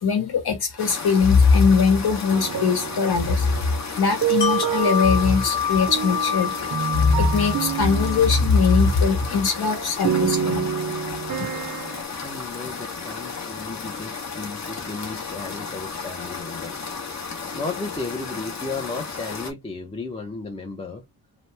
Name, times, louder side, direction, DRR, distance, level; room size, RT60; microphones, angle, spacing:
voice 1, 0.0-3.5 4.0-10.7, left 5 dB, 70° left, 1.3 m, -20 dB
sound 1, 0.8-19.5, left 5 dB, 45° left, 0.9 m, -34 dB
sound 2, 2.3-3.7 4.0-8.8 9.2-9.3 9.6-12.0, right 9 dB, 50° right, 0.5 m, -28 dB
Wind chime, 4.4-10.2 10.6-10.7, left 7 dB, 85° left, 1.0 m, -29 dB
voice 2, 12.2-16.9 17.5-21.0, left 3 dB, 15° left, 0.5 m, -34 dB
2.9 x 2.0 x 3.1 m
wide cardioid pair, 145°, 40 cm